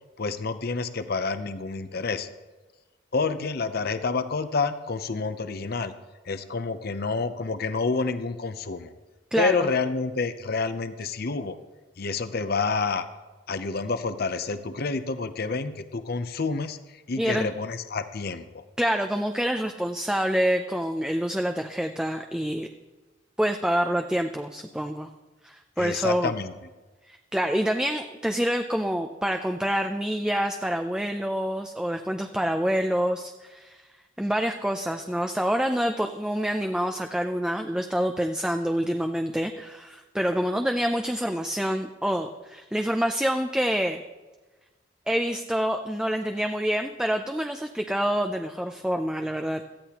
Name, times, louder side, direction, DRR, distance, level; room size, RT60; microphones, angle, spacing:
voice 1, 0.2-2.3 3.1-5.9 6.3-8.9 9.4-11.6 12.0-13.0 13.5-18.6 25.8-26.5, left 4 dB, 55° left, 10 dB, 0.7 m, -28 dB
voice 2, 9.3-9.7 17.2-17.5 18.8-22.7 23.4-25.1 25.4-26.3 27.0-33.8 34.2-44.0 45.1-49.6, equal, 5° right, 5 dB, 0.4 m, -27 dB
17.5 x 13.5 x 2.9 m, 1.2 s
head